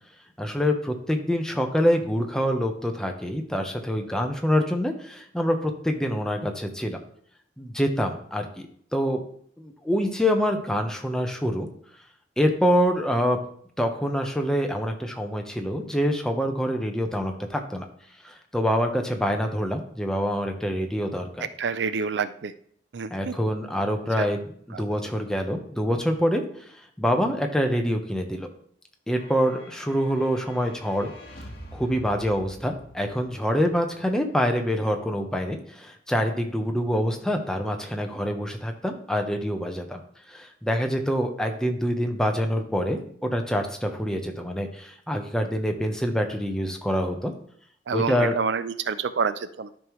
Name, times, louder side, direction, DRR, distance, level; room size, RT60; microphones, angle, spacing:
voice 1, 0.4-7.0 7.6-8.7 8.9-9.2 9.6-11.7 12.4-13.4 13.8-17.9 18.2-21.5 23.1-24.4 24.8-26.4 27.0-28.5 29.1-31.1 31.7-40.0 40.3-47.3 47.9-48.4, equal, 5° left, 3 dB, 0.9 m, -26 dB
voice 2, 21.4-22.5 22.9-23.3 24.2-24.3 24.7-24.9 47.9-49.7, right 5 dB, 65° right, 13 dB, 0.4 m, -28 dB
sound 1, 29.1-33.8, left 1 dB, 55° left, 1.5 m, -45 dB
12.5 x 5.3 x 3.1 m, 0.63 s
head